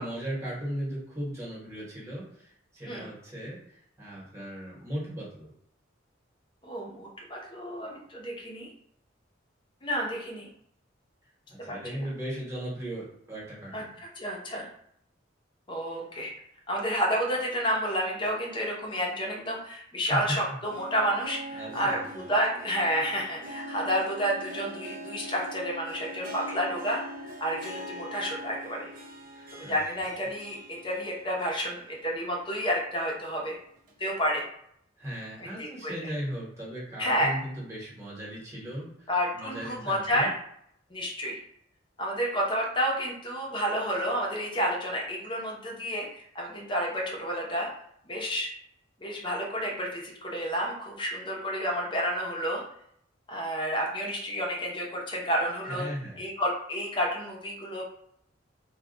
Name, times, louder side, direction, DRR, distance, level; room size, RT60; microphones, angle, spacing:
voice 1, 0.0-5.5 11.5-13.9 20.1-20.4 21.5-22.3 29.3-30.0 35.0-39.1 39.3-40.3 55.6-56.2, equal, 15° right, -5 dB, 1.1 m, -37 dB
voice 2, 6.6-8.7 9.8-10.5 11.7-12.0 13.7-14.7 15.7-16.3 16.7-27.0 27.4-28.9 29.5-33.6 34.0-34.5 35.4-36.1 37.0-37.3 39.1-40.4 40.9-41.3 42.0-47.7 48.1-48.5 49.0-52.6 53.3-55.9 56.2-57.8, equal, 25° left, -1 dB, 0.7 m, -30 dB
Harp, 20.4-32.6 32.9-33.0 33.9-34.0, equal, 45° right, 0.5 m, -43 dB
2.3 x 2.2 x 3.8 m, 0.70 s
head